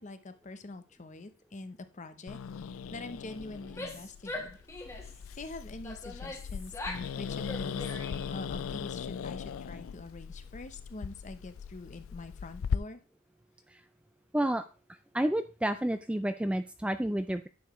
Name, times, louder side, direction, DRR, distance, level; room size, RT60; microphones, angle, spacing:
voice 1, 0.0-4.6 5.1-7.9 8.3-13.0, left 2 dB, 35° left, 10 dB, 0.8 m, -45 dB
Growling, 2.3-12.8, left 6 dB, 70° left, 0.4 m, -39 dB
Female speech woman speaking / Yell, 3.6-5.2 5.8-7.1 7.4-8.4, left 2 dB, 15° left, 1.4 m, -42 dB
voice 2, 14.3-14.6 15.1-17.5, right 1 dB, 5° right, 10 dB, 0.3 m, -30 dB
10.5 x 7.0 x 3.1 m, 0.34 s
head